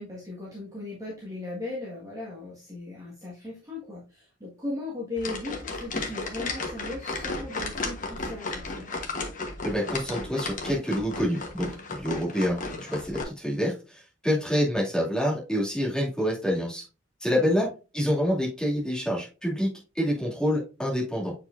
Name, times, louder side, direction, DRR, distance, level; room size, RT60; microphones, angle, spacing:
voice 1, 0.0-8.9 17.4-17.5, left 2 dB, 15° right, -6 dB, 1.7 m, -37 dB
sound 1, 5.2-13.2, left 3 dB, 40° left, 1.3 m, -34 dB
voice 2, 9.6-12.6 12.9-16.8 17.2-17.7 17.9-21.3, equal, 5° left, -5 dB, 2.5 m, -27 dB
8.1 x 4.8 x 2.6 m, 0.31 s
head